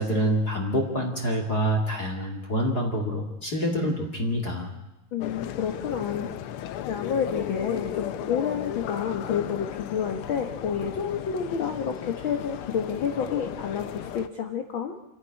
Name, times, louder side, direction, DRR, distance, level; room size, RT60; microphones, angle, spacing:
voice 1, 0.0-4.7, equal, 35° left, 1 dB, 2.4 m, -26 dB
voice 2, 5.1-6.3 6.9-14.9, left 7 dB, 55° left, 5 dB, 1.6 m, -29 dB
sound 1, 5.2-14.3, left 10 dB, 90° left, 1.2 m, -35 dB
28.0 x 11.0 x 9.9 m, 1.0 s
omnidirectional pair, 3.7 m